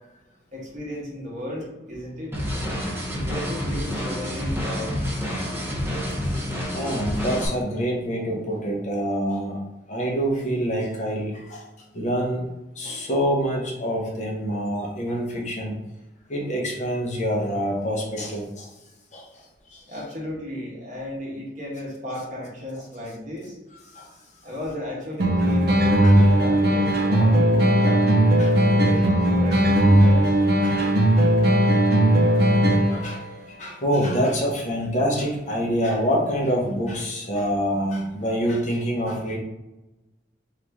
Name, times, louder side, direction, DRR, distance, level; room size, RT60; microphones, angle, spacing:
voice 1, 0.5-2.4 3.1-5.0 19.9-23.5 24.4-28.1 28.6-29.1 29.4-30.3, equal, 45° right, -4 dB, 1.3 m, -35 dB
sound 1, 2.3-7.5, equal, 15° right, 0.8 m, -28 dB
voice 2, 5.3-5.8 6.2-6.5 6.7-9.6 9.9-11.6 11.9-12.5 12.8-15.8 16.3-18.7 19.1-19.5 19.7-19.8 23.9-24.1 26.0-26.1 28.4-28.6 29.5-29.6 30.6-31.3 31.7-31.8 32.2-32.4 32.9-39.4, equal, 45° left, -2 dB, 0.9 m, -26 dB
sound 2, 25.2-33.2, right 1 dB, 60° right, 0.6 m, -18 dB
3.8 x 3.0 x 3.5 m, 0.99 s
head